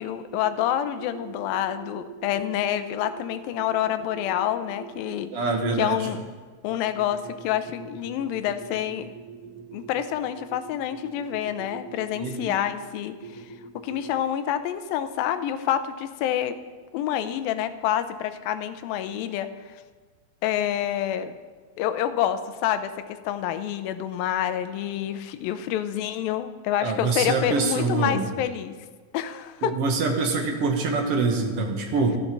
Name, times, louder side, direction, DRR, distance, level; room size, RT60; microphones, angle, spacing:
voice 1, 0.0-5.3 5.8-6.2 6.6-9.1 9.7-13.4 13.8-16.6 16.9-19.5 20.4-21.3 21.8-28.7 29.1-29.8, left 11 dB, 85° left, 10 dB, 2.5 m, -27 dB
voice 2, 5.3-6.1 9.3-9.5 9.8-9.9 12.1-12.6 13.2-14.0 26.8-28.3 29.6-32.2, right 4 dB, 55° right, 3 dB, 1.8 m, -26 dB
13.0 x 12.0 x 6.0 m, 1.4 s
omnidirectional pair, 4.1 m